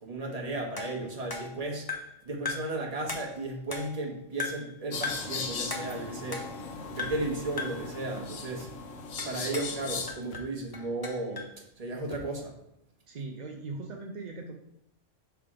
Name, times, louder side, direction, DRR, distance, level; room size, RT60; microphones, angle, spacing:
voice 1, 0.0-1.9 2.2-6.5 6.9-8.7 9.2-11.5 11.8-12.6, right 2 dB, 30° right, 0 dB, 1.1 m, -35 dB
sound 1, 0.8-2.2 2.5-2.8 3.1-4.1 4.4-4.7 5.0-5.4 5.7-6.7 7.0-7.3 7.6-7.9 9.2-9.8 10.1-11.6, left 4 dB, 25° left, 0.6 m, -38 dB
sound 2, 4.9-10.1, left 4 dB, 90° left, 1.2 m, -38 dB
sound 3, 6.9-7.1 8.6-8.8 10.2-10.6 12.0-12.4, left 2 dB, 60° left, 1.0 m, -50 dB
voice 2, 13.1-14.5, right 3 dB, 50° right, 1 dB, 0.5 m, -39 dB
5.8 x 3.4 x 4.8 m, 0.81 s
omnidirectional pair, 1.3 m